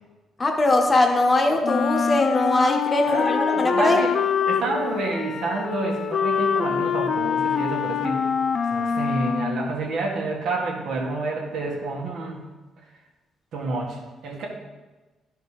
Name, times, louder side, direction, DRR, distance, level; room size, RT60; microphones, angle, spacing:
voice 1, 0.4-4.0, left 2 dB, 30° left, 3 dB, 1.3 m, -21 dB
Wind instrument woodwind instrument, 1.6-9.7, left 6 dB, 55° left, 0.5 m, -25 dB
voice 2, 3.0-4.1 4.4-8.2 8.7-12.4 13.5-14.5, right 3 dB, 75° right, -1 dB, 1.8 m, -28 dB
11.5 x 4.5 x 4.9 m, 1.2 s
cardioid pair, 90°, 0 cm